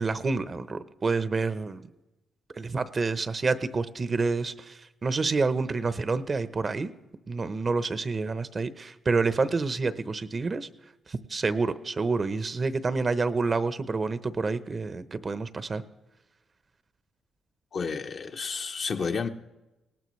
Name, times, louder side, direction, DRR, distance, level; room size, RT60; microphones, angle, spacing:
voice 1, 0.0-1.9 2.6-6.9 7.3-10.7 11.1-15.8, right 4 dB, 40° right, 0.8 m, -28 dB
voice 2, 17.7-19.3, left 5 dB, 55° left, 1.0 m, -31 dB
19.5 x 18.0 x 3.2 m
cardioid pair, 70°, 0 cm